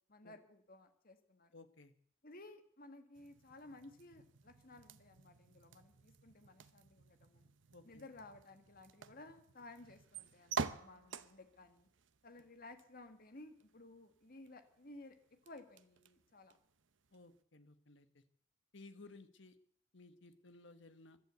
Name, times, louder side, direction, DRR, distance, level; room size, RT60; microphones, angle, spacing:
voice 1, 0.1-1.5 2.2-7.5 7.8-11.9 12.2-15.1 15.4-16.6, left 2 dB, 45° left, 8 dB, 1.7 m, -56 dB
voice 2, 1.5-1.9 7.7-8.1 17.1-18.2 18.7-19.6 19.9-21.2, left 3 dB, 65° left, 11 dB, 1.5 m, -58 dB
sound 1, 3.1-17.4, right 5 dB, 65° right, 0.8 m, -50 dB
15.0 x 11.5 x 8.1 m, 0.62 s
head